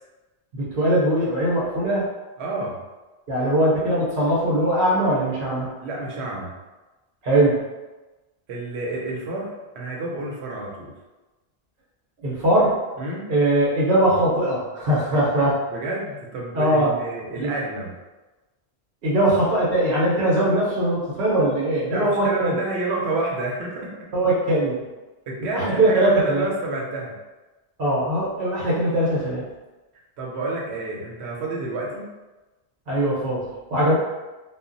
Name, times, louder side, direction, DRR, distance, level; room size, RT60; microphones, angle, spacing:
voice 1, 0.5-2.1 3.3-5.7 7.2-7.6 12.2-12.7 13.3-15.6 16.5-16.9 17.4-17.5 19.0-22.6 24.1-24.8 25.5-26.4 27.8-29.4 32.9-33.9, right 1 dB, 65° right, -7 dB, 1.0 m, -21 dB
voice 2, 2.4-2.8 5.8-6.6 8.5-10.9 13.0-13.3 15.7-17.9 21.9-24.1 25.3-27.1 30.2-32.1 33.8-33.9, right 2 dB, 90° right, -2 dB, 0.9 m, -29 dB
2.1 x 2.0 x 3.7 m, 1.1 s
omnidirectional pair, 1.1 m